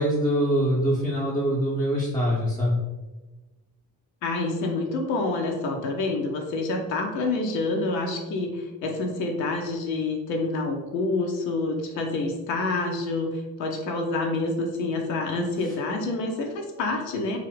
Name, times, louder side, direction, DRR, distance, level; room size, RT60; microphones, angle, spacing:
voice 1, 0.0-2.8 15.7-15.8, equal, 10° left, -5 dB, 0.4 m, -24 dB
voice 2, 4.2-17.4, left 2 dB, 75° left, 2 dB, 0.6 m, -27 dB
2.5 x 2.4 x 3.2 m, 1.2 s
figure-of-eight pair, 40°, 50 cm